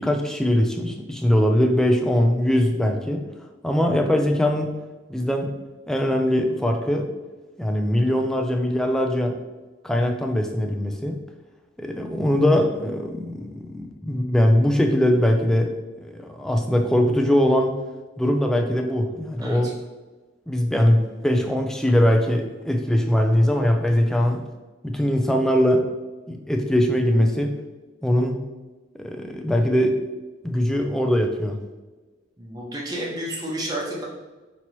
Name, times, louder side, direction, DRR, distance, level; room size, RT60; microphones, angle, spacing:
voice 1, 0.0-3.2 3.6-4.7 5.1-5.5 5.9-7.1 7.6-9.4 9.8-11.2 11.8-15.7 16.0-17.7 18.2-19.7 20.5-24.4 24.8-25.9 26.3-27.6 28.0-28.4 29.0-30.0 30.4-31.6, equal, 5° left, 3 dB, 0.4 m, -21 dB
voice 2, 19.4-19.7 32.4-34.0, right 1 dB, 20° right, -4 dB, 0.8 m, -31 dB
5.3 x 2.9 x 3.0 m, 1.2 s
head